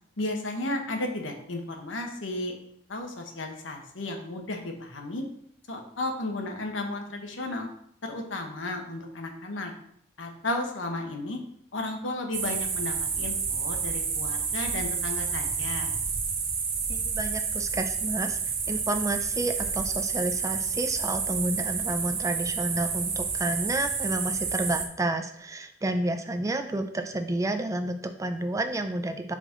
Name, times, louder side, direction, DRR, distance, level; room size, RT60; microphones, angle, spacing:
voice 1, 0.2-2.5 2.9-5.2 5.7-7.7 8.0-9.7 10.2-11.4 11.7-15.9, left 2 dB, 80° left, 3 dB, 1.1 m, -34 dB
sound 1, 12.3-24.9, right 5 dB, 50° right, 0.9 m, -30 dB
voice 2, 16.9-18.4 18.7-29.4, right 1 dB, 15° right, 7 dB, 0.4 m, -30 dB
5.9 x 4.9 x 3.8 m, 0.70 s
head